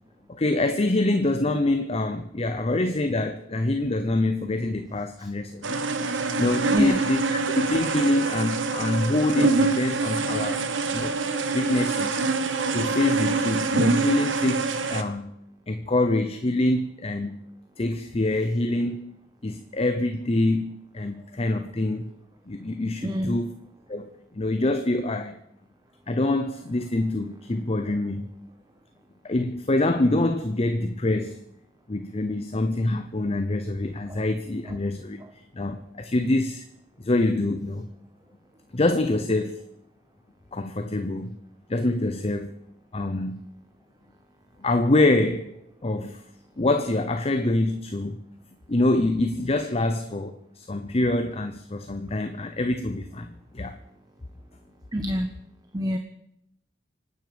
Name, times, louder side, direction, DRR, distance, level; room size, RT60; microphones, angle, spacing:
voice 1, 0.3-5.8 6.4-7.2 7.6-10.7 10.9-11.2 11.5-12.2 12.7-15.3 15.7-17.4 17.8-19.1 19.4-22.1 22.5-23.5 23.9-25.4 26.1-28.3 29.2-31.4 31.9-36.6 37.0-37.9 38.7-39.6 40.5-41.3 41.7-42.5 42.9-43.5 44.6-45.6 45.8-46.2 46.6-48.2 48.7-53.8, left 2 dB, 35° left, 0.8 m, -25 dB
sound 1, 5.6-15.0, right 3 dB, 80° right, 1.2 m, -25 dB
voice 2, 6.7-7.0 23.0-23.4 34.1-34.2 54.9-55.3 55.7-56.0, equal, 20° right, 0.9 m, -26 dB
26.0 x 9.3 x 5.1 m
head